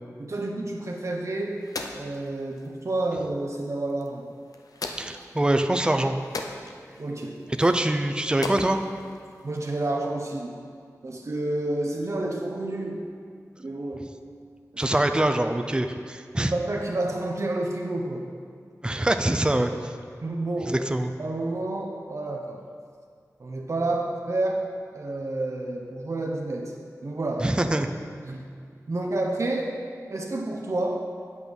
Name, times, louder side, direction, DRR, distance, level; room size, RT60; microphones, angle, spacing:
voice 1, 0.2-1.7 2.0-4.2 7.0-7.5 9.4-10.6 11.0-13.1 13.6-14.1 14.7-14.9 16.4-18.3 20.2-20.9 21.2-22.7 23.4-24.6 24.9-26.7 27.0-27.5 28.2-28.4 28.9-29.8 30.1-31.0, right 2 dB, 55° right, 0 dB, 0.9 m, -29 dB
sound 1, 0.9-9.9, left 3 dB, 80° left, 0.7 m, -41 dB
voice 2, 5.0-6.1 7.5-8.8 14.8-16.5 18.8-19.9 20.6-21.1 27.4-27.9, right 1 dB, 15° right, 6 dB, 0.5 m, -24 dB
8.3 x 8.3 x 5.3 m, 2.1 s
wide cardioid pair, 85°, 6 cm